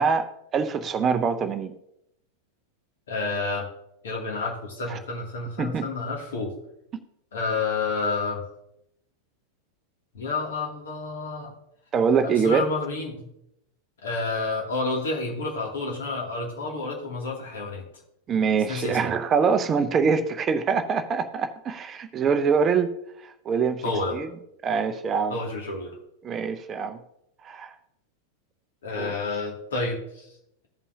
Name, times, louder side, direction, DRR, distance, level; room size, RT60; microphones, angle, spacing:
voice 1, 0.0-1.7 4.9-5.0 5.6-5.9 11.9-12.7 18.3-22.9 23.2-23.8 24.1-24.3 24.6-25.4 26.2-27.0 27.4-27.7 29.0-29.1, right 6 dB, 25° right, 9 dB, 0.6 m, -24 dB
voice 2, 3.1-3.7 4.0-6.5 7.3-8.4 10.1-11.5 12.4-13.3 14.0-17.8 18.7-19.1 23.8-24.2 25.3-26.0 28.8-30.3, left 3 dB, 60° left, -1 dB, 2.3 m, -29 dB
15.5 x 5.4 x 2.7 m, 0.80 s
figure-of-eight pair, 90°, 0 cm